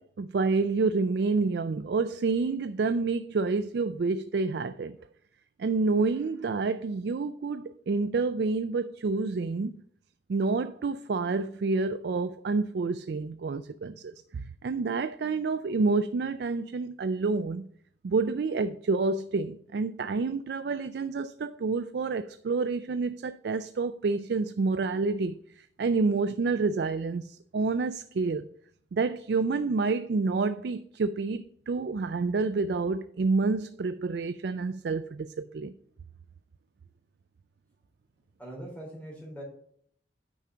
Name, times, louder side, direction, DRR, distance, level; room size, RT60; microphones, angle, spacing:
voice 1, 0.0-5.0 5.6-9.8 10.3-17.7 18.0-28.5 28.9-35.7, right 4 dB, 60° right, 0.4 m, -28 dB
voice 2, 38.4-39.4, right 1 dB, 10° left, 3.6 m, -41 dB
9.3 x 5.7 x 3.8 m
head